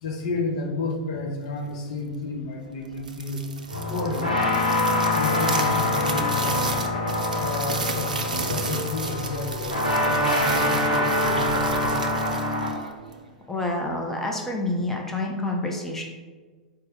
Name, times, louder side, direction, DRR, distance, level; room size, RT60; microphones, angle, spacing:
voice 1, 0.0-3.4 3.8-4.5 5.1-6.6 7.3-12.1, left 3 dB, 50° left, 2 dB, 0.6 m, -31 dB
sound 1, 2.9-13.3, right 3 dB, 80° right, 0.4 m, -33 dB
sound 2, 3.7-12.7, left 1 dB, 85° left, 0.8 m, -25 dB
voice 2, 13.5-16.0, left 2 dB, 5° left, 0 dB, 0.5 m, -28 dB
4.5 x 2.0 x 4.4 m, 1.4 s
figure-of-eight pair, 95°, 4 cm